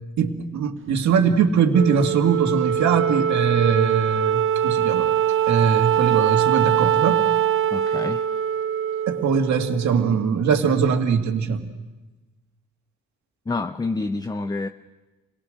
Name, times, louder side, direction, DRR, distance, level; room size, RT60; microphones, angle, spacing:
voice 1, 0.2-5.1 5.5-7.2 9.1-11.7, right 6 dB, 70° right, 5 dB, 2.1 m, -21 dB
Wind instrument woodwind instrument, 1.7-10.3, right 9 dB, 45° right, 0.7 m, -22 dB
voice 2, 7.7-8.2 13.5-14.7, left 3 dB, 15° left, 9 dB, 0.6 m, -27 dB
28.5 x 18.5 x 6.5 m, 1.1 s
cardioid pair, 90°, 30 cm